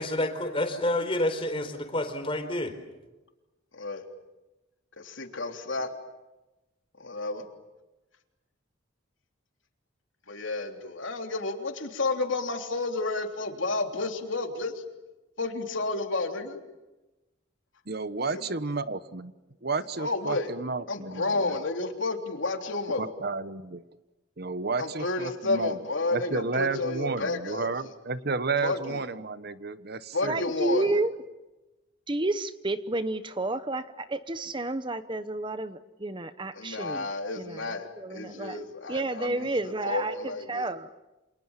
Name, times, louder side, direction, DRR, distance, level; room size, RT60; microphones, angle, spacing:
voice 1, 0.0-2.8, left 1 dB, 25° left, 4.2 m, -29 dB
voice 2, 3.7-4.0 5.0-5.9 7.0-7.5 10.3-14.8 15.4-16.6 18.3-18.4 20.0-20.5 20.9-23.1 24.8-27.9 28.6-29.0 30.1-30.9 36.5-40.6, left 3 dB, 70° left, 3.5 m, -31 dB
voice 3, 17.9-19.3 19.6-21.6 23.0-23.8 24.4-25.8 26.1-30.4, right 3 dB, 50° right, 1.1 m, -32 dB
voice 4, 30.2-31.1 32.1-37.1 37.4-38.6 38.9-40.9, right 2 dB, 25° right, 0.9 m, -31 dB
29.5 x 27.5 x 7.4 m
head